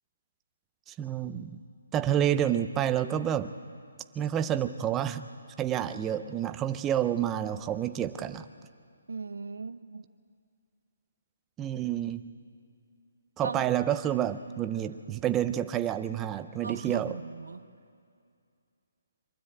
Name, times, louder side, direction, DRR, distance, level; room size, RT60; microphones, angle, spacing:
voice 1, 0.9-1.6 1.9-3.5 4.2-5.3 5.6-8.5 11.6-12.2 13.4-17.2, right 10 dB, 10° right, 10 dB, 0.5 m, -29 dB
voice 2, 9.1-10.0 13.4-13.7 16.6-17.7, right 4 dB, 85° right, 13 dB, 0.8 m, -38 dB
23.5 x 12.5 x 8.7 m, 2.3 s
hypercardioid pair, 170°, 0 cm